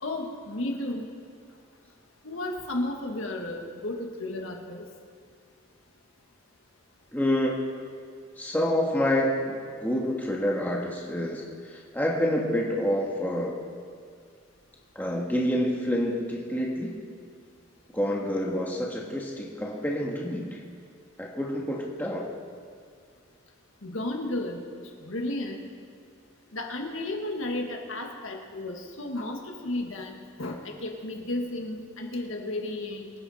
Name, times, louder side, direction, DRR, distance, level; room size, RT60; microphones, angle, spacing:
voice 1, 0.0-1.1 2.2-4.8 23.8-25.6 26.5-33.1, left 1 dB, 70° left, 2 dB, 1.8 m, -33 dB
voice 2, 7.1-7.6 8.4-13.6 14.9-17.0 17.9-20.6 21.2-22.3, equal, 10° left, -2 dB, 1.5 m, -28 dB
25.0 x 9.5 x 4.3 m, 2.1 s
head